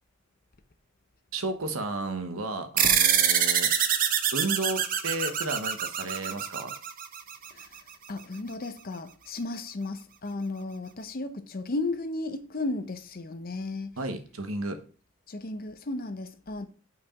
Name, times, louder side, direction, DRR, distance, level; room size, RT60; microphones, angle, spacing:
voice 1, 1.3-3.7 4.3-6.7 14.0-14.8, right 2 dB, 80° right, 1.1 m, -33 dB
sound 1, 2.8-7.6, right 9 dB, 40° right, 0.7 m, -25 dB
voice 2, 8.1-14.0 15.3-16.7, left 2 dB, 45° left, 0.7 m, -34 dB
5.9 x 4.9 x 4.9 m
head